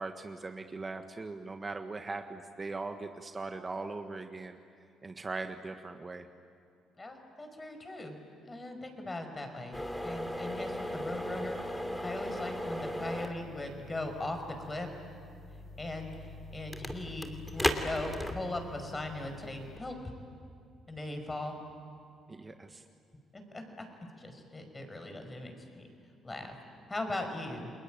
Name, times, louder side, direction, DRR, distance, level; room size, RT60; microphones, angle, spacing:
voice 1, 0.0-4.6 5.0-6.3 22.3-22.8, right 3 dB, 30° right, 6 dB, 1.5 m, -40 dB
voice 2, 7.0-8.2 8.5-11.6 12.0-14.9 15.8-20.0 20.9-21.6 23.3-23.9 24.2-25.8 26.2-26.6 26.9-27.7, left 2 dB, 25° left, 5 dB, 5.5 m, -39 dB
sound 1, 9.7-19.8, left 1 dB, 5° left, 2.9 m, -38 dB
30.0 x 21.0 x 9.0 m, 2.4 s
supercardioid pair, 60°, 0 cm